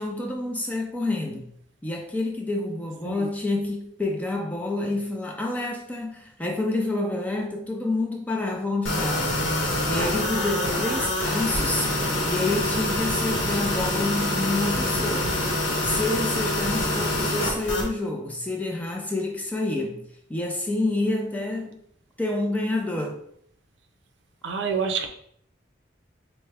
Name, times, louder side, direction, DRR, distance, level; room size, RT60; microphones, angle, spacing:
voice 1, 0.0-1.5 1.8-9.4 9.9-11.9 12.3-15.4 15.8-20.0 20.3-21.8 22.2-23.2, left 2 dB, 10° left, 1 dB, 0.4 m, -28 dB
sound 1, 8.8-17.9, left 1 dB, 80° left, 0.9 m, -26 dB
voice 2, 24.4-25.1, right 6 dB, 70° right, 5 dB, 0.5 m, -27 dB
4.5 x 2.1 x 3.3 m, 0.68 s
head